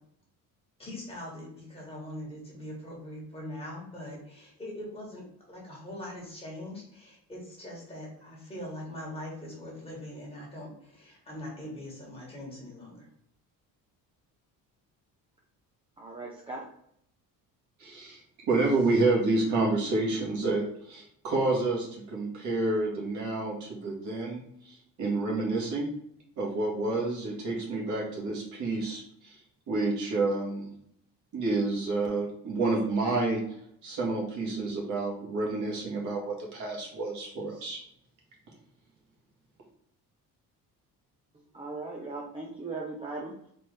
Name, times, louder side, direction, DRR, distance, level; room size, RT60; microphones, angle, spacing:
voice 1, 0.8-13.1, left 1 dB, 15° left, -3 dB, 1.6 m, -42 dB
voice 2, 16.0-16.7 41.5-43.3, right 3 dB, 15° right, -2 dB, 0.5 m, -38 dB
voice 3, 17.8-18.2 18.5-25.9 26.4-29.4 29.7-30.7 31.3-33.4 33.8-37.8, right 2 dB, 55° right, -2 dB, 1.7 m, -29 dB
4.2 x 3.4 x 3.3 m, 0.71 s
cardioid pair, 160°, 34 cm